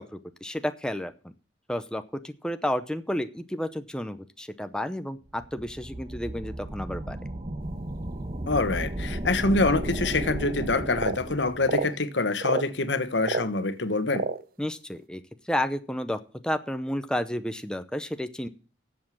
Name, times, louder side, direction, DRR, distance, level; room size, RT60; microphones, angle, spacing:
voice 1, 0.0-1.3 1.7-7.2 14.6-18.5, left 1 dB, 5° left, 0.7 m, -31 dB
sound 1, 5.3-11.8, right 1 dB, 35° right, 1.1 m, -34 dB
voice 2, 8.5-14.2, left 3 dB, 75° left, 1.3 m, -25 dB
sound 2, 10.9-11.2 11.6-12.0 12.4-12.7 13.2-13.5 14.1-14.4, right 4 dB, 50° right, 0.7 m, -29 dB
11.0 x 7.7 x 7.4 m
head